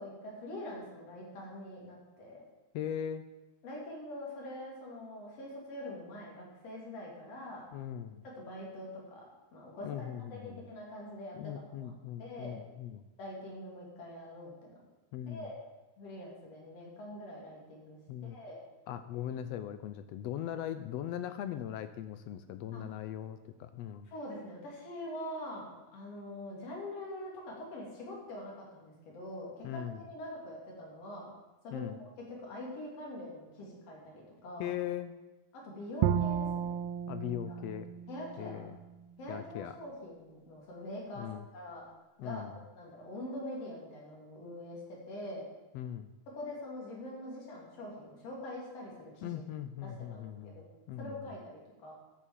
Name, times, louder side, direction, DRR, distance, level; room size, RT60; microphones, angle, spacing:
voice 1, 0.0-2.4 3.6-7.6 8.2-9.2 9.5-11.9 12.2-12.6 13.2-14.7 15.3-15.5 16.0-18.6 22.7-22.8 24.1-31.3 31.6-34.7 35.5-36.7 38.1-38.6 39.2-41.3 41.5-41.9 42.2-42.4 42.8-45.5 46.3-49.3 49.8-50.7 51.0-51.9, left 1 dB, 55° left, -3 dB, 3.9 m, -44 dB
voice 2, 2.7-3.2 7.7-8.2 9.8-10.7 11.3-13.0 15.1-15.5 18.1-18.4 18.9-24.1 29.6-30.0 31.7-32.0 34.6-35.1 37.1-37.9 38.4-38.8 39.3-39.7 41.2-41.5 42.2-42.6 45.7-46.1 49.2-50.6 50.9-51.3, left 10 dB, 80° left, 11 dB, 1.6 m, -39 dB
Bowed string instrument, 36.0-39.1, right 9 dB, 75° right, 1.5 m, -34 dB
12.5 x 7.2 x 7.4 m, 1.1 s
omnidirectional pair, 3.3 m